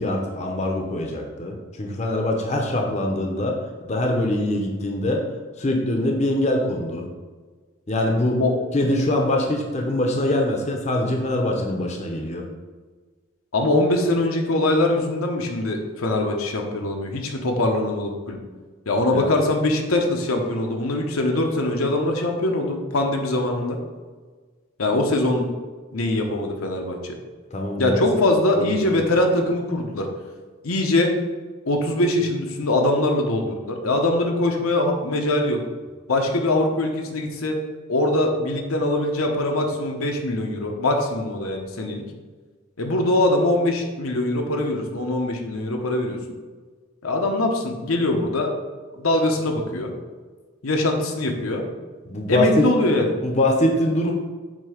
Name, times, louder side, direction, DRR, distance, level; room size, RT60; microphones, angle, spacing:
voice 1, 0.0-5.2 5.6-7.1 7.9-8.4 8.7-12.5 19.1-19.3 27.5-28.0 28.5-29.0 52.1-52.7 53.2-54.1, left 1 dB, 30° left, 1 dB, 0.6 m, -23 dB
voice 2, 13.5-18.4 18.9-23.8 24.8-25.5 25.9-27.2 27.8-30.1 30.6-31.1 31.7-35.6 36.1-37.6 37.9-42.0 42.8-46.2 47.0-48.5 49.0-49.9 50.6-51.6 52.3-53.2, left 1 dB, 85° left, 2 dB, 0.9 m, -22 dB
7.4 x 2.8 x 5.0 m, 1.4 s
head